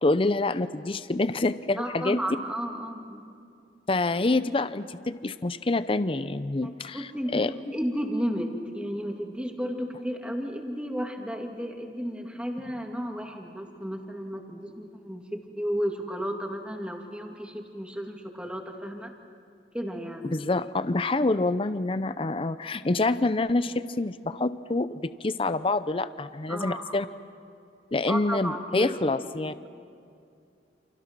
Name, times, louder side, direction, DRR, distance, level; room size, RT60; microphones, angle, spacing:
voice 1, 0.0-2.2 3.9-7.5 20.3-27.1 27.9-29.7, left 2 dB, 30° left, 13 dB, 0.6 m, -27 dB
voice 2, 1.8-3.3 6.6-7.4 7.7-19.1 19.7-20.3 26.5-27.1 28.1-29.7, equal, 5° right, 2 dB, 2.5 m, -33 dB
29.5 x 28.5 x 6.1 m, 2.4 s
head